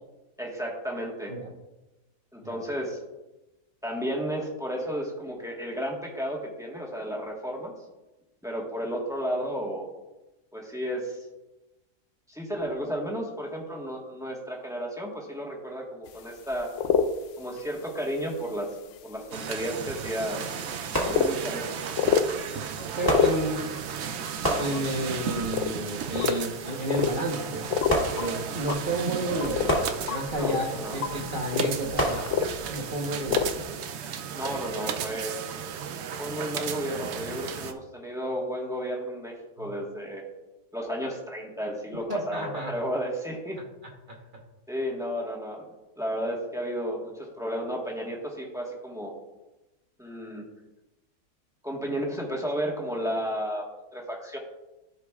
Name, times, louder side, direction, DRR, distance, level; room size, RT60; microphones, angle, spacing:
voice 1, 0.4-1.4 2.3-3.0 3.8-7.7 8.4-9.9 10.5-11.2 12.3-16.7 17.4-18.7 19.0-20.4 21.1-21.7 30.3-31.0 34.3-35.4 36.2-40.2 40.7-43.6 44.7-45.7 46.0-49.1 50.0-50.4 51.6-53.7 53.9-54.4, equal, ahead, -2 dB, 1.2 m, -32 dB
sound 1, 16.0-16.1 16.5-17.1 17.6-17.8 18.4-18.5 19.3-19.4 20.0-20.1 20.7-20.8 21.0-21.3 21.9-22.3 22.8-23.8 24.2-24.8 25.3-25.7 26.0-26.4 26.9-27.3 27.6-28.3 28.6-29.8 30.1-33.0 33.2-33.6, left 7 dB, 65° left, 0.8 m, -27 dB
sound 2, 19.3-37.7, right 7 dB, 75° right, 0.6 m, -35 dB
sound 3, 20.9-21.7 23.1-24.0 24.4-25.4 27.9-28.8 29.7-30.6 32.0-32.9 33.5-33.6, equal, 15° left, 1.6 m, -30 dB
voice 2, 23.0-23.7 24.5-27.7 28.1-29.8 30.1-32.3 32.7-33.6 39.6-39.7 42.1-42.7, right 1 dB, 35° right, -1 dB, 1.1 m, -31 dB
15.0 x 5.0 x 2.4 m, 1.0 s
omnidirectional pair, 1.7 m